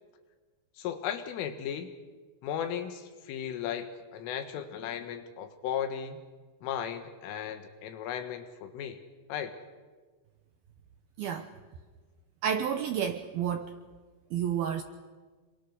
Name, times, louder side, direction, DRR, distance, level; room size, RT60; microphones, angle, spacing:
voice 1, 0.8-1.9 2.4-6.2 6.6-9.0 9.3-9.6, left 9 dB, 85° left, 8 dB, 4.1 m, -36 dB
voice 2, 11.2-11.5 12.4-13.7 14.3-14.8, right 8 dB, 80° right, 7 dB, 2.2 m, -30 dB
27.0 x 24.0 x 6.6 m, 1.4 s
omnidirectional pair, 5.6 m